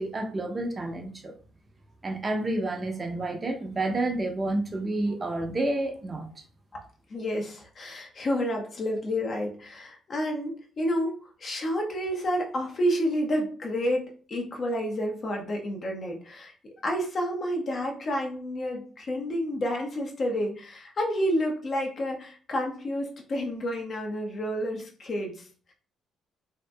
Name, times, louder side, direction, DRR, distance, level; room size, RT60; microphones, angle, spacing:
voice 1, 0.0-1.3 2.0-6.3, right 2 dB, 35° right, 3 dB, 0.6 m, -29 dB
voice 2, 7.1-11.1 11.4-16.5 16.8-25.7, equal, 50° left, 2 dB, 0.7 m, -30 dB
2.7 x 2.5 x 2.2 m, 0.42 s
hypercardioid pair, 55°, 0 cm